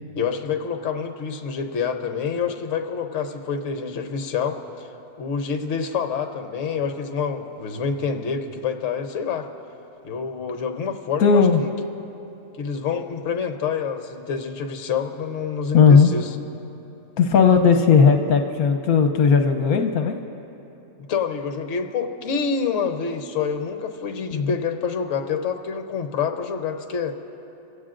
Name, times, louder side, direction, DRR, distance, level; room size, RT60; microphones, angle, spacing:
voice 1, 0.2-4.9 5.2-9.5 10.0-11.7 12.6-16.3 21.1-27.1, left 6 dB, 60° left, 6 dB, 1.1 m, -27 dB
voice 2, 11.2-11.6 15.7-16.1 17.2-20.2 24.3-24.5, left 6 dB, 75° left, 5 dB, 1.2 m, -16 dB
25.5 x 16.0 x 2.5 m, 2.9 s
omnidirectional pair, 1.6 m